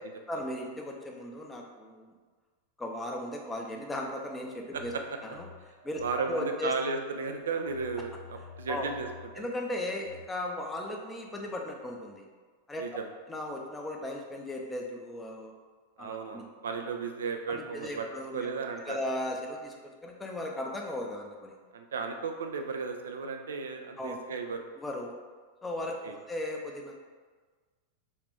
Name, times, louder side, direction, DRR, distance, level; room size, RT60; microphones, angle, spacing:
voice 1, 0.3-2.1 2.8-4.9 5.3-5.5 5.8-6.7 8.7-8.9 9.4-12.2 12.7-12.8 13.3-15.5 16.0-16.5 17.5-21.6 24.0-24.2 24.8-25.1 25.6-27.0, left 1 dB, 10° left, 0 dB, 0.5 m, -36 dB
Telephone, 4.4-6.7 7.1-10.2, left 5 dB, 80° left, 0.8 m, -50 dB
voice 2, 6.0-9.1 9.4-9.5 12.8-13.1 16.0-18.1 18.3-19.0 21.7-24.7 26.0-26.2, right 5 dB, 65° right, 5 dB, 0.3 m, -34 dB
2.6 x 2.5 x 3.3 m, 1.4 s
figure-of-eight pair, 90°, 0 cm